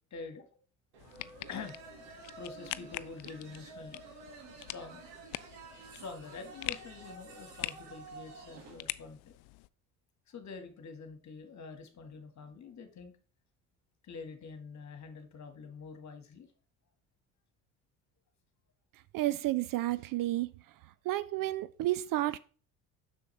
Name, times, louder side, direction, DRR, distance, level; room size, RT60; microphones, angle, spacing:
voice 1, 0.1-0.5 1.5-1.8 2.3-5.0 5.9-9.3 10.3-13.1 14.0-16.5, left 4 dB, 40° left, 1.7 m, -46 dB
sound 1, 0.9-8.8, right 4 dB, 65° right, 2.0 m, -51 dB
sound 2, 1.0-9.7, left 20 dB, 60° left, 0.5 m, -44 dB
voice 2, 19.1-20.5 21.1-22.4, right 16 dB, 50° right, 0.5 m, -31 dB
6.9 x 6.3 x 3.2 m
hypercardioid pair, 65°, 44 cm